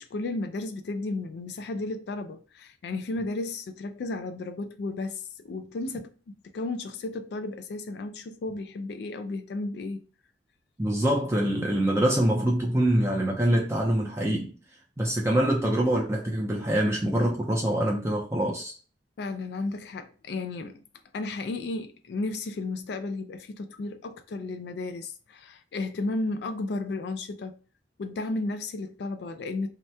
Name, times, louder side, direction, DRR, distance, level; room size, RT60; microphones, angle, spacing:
voice 1, 0.0-10.0 19.2-20.8 21.1-27.6 28.0-29.7, left 2 dB, 65° left, 0.3 m, -33 dB
voice 2, 10.8-14.5 15.0-18.7, right 1 dB, 15° right, 0.4 m, -25 dB
2.8 x 2.1 x 3.3 m
head